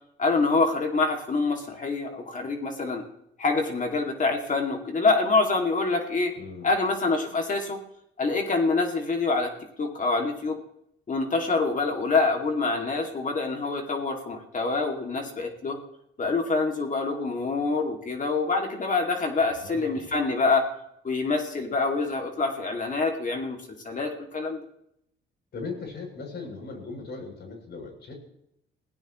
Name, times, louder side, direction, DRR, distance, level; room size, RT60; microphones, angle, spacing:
voice 1, 0.2-3.1 3.4-6.3 6.6-7.8 8.2-9.5 9.8-10.6 11.1-15.8 16.2-20.6 21.0-24.6, left 3 dB, 40° left, 3 dB, 2.5 m, -26 dB
voice 2, 6.4-6.7 19.4-20.1 25.5-28.1, left 4 dB, 60° left, 1 dB, 7.9 m, -39 dB
26.5 x 17.0 x 3.2 m, 0.76 s
cardioid pair, 90°, 20 cm